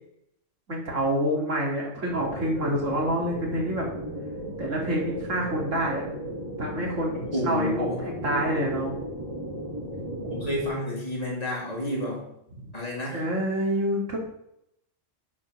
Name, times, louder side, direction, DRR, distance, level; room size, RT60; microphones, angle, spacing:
voice 1, 0.7-3.9 4.6-6.0 6.6-9.0 12.5-12.7 13.1-14.2, right 1 dB, 85° right, -2 dB, 2.9 m, -27 dB
sound 1, 2.1-10.7, equal, 25° right, 2.5 m, -35 dB
voice 2, 7.3-8.0 10.3-12.2 12.7-13.2, left 1 dB, 30° left, -4 dB, 3.4 m, -30 dB
10.5 x 5.5 x 6.2 m, 0.79 s
omnidirectional pair, 1.3 m